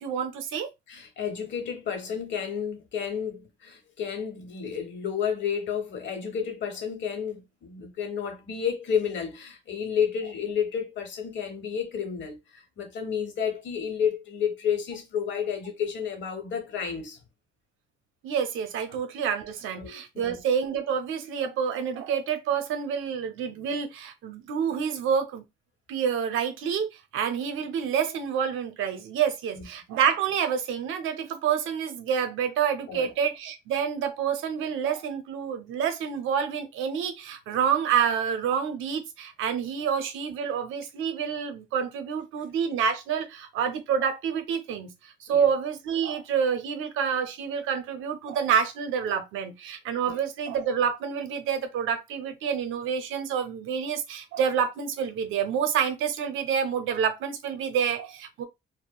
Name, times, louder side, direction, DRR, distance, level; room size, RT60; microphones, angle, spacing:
voice 1, 0.0-0.7 18.2-25.4 25.9-58.4, right 7 dB, 85° right, 0.5 m, -28 dB
voice 2, 0.9-17.2 18.9-19.0 19.7-20.3 29.5-29.7 32.9-33.1 45.3-45.5 50.0-50.2, left 7 dB, 70° left, 0.9 m, -31 dB
2.8 x 2.0 x 2.2 m
cardioid pair, 90°, 20 cm